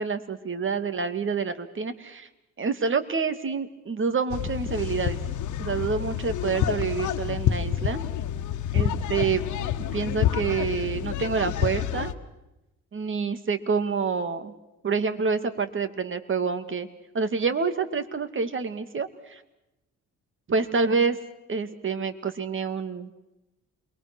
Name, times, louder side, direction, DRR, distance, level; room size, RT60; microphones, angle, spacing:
voice 1, 0.0-2.3 2.6-5.2 5.6-8.0 8.7-9.4 9.9-12.2 12.9-14.5 14.8-16.9 17.1-19.4 20.5-21.2 21.5-23.1, right 5 dB, 40° right, 10 dB, 2.4 m, -27 dB
sound 1, 4.3-12.1, left 10 dB, 75° left, 1.4 m, -28 dB
28.0 x 23.0 x 6.3 m, 0.94 s
cardioid pair, 90°, 30 cm